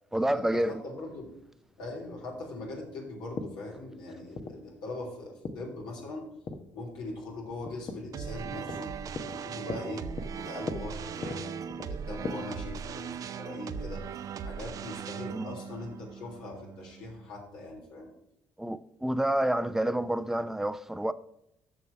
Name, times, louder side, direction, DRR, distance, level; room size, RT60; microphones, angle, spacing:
voice 1, 0.1-0.8 15.3-15.5 18.6-21.1, right 1 dB, 5° right, 0.6 m, -28 dB
voice 2, 0.7-1.3 1.8-6.2 6.7-8.9 9.3-10.1 10.4-11.5 11.9-14.0 14.4-18.1, left 2 dB, 80° left, 3.5 m, -41 dB
sound 1, 1.3-12.3, left 4 dB, 50° left, 1.2 m, -42 dB
sound 2, 8.1-17.3, right 7 dB, 55° right, 0.6 m, -39 dB
6.7 x 6.2 x 7.1 m
supercardioid pair, 65°, 7 cm